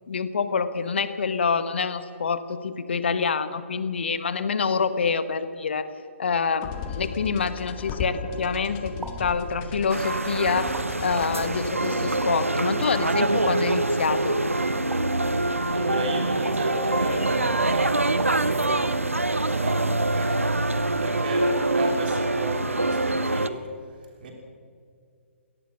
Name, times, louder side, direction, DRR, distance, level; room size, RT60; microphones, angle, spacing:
voice 1, 0.1-5.9 6.2-14.4, left 5 dB, 55° left, 12 dB, 1.4 m, -26 dB
sound 1, 6.6-13.9, left 5 dB, 25° left, 1.9 m, -37 dB
sound 2, 9.0-9.4 10.7-11.1 12.2-12.6 13.7-14.0 14.9-15.3 16.4-16.8 18.2-18.6, right 3 dB, 5° right, 1.0 m, -41 dB
sound 3, 9.9-23.5, right 2 dB, 80° right, 0.9 m, -25 dB
voice 2, 15.7-20.6 21.0-23.7 24.2-24.3, right 2 dB, 45° right, 2 dB, 3.3 m, -33 dB
23.0 x 18.0 x 6.3 m, 2.2 s
figure-of-eight pair, 130°, 7 cm